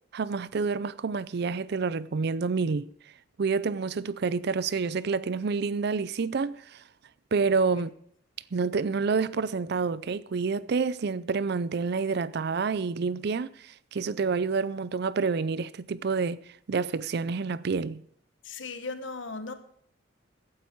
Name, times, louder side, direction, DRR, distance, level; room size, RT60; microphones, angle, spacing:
voice 1, 0.1-2.9 3.4-6.8 7.3-7.9 8.5-16.4 16.7-18.0, right 4 dB, 60° right, 0.5 m, -28 dB
voice 2, 18.4-19.5, left 3 dB, 75° left, 1.3 m, -37 dB
15.0 x 9.6 x 4.6 m
head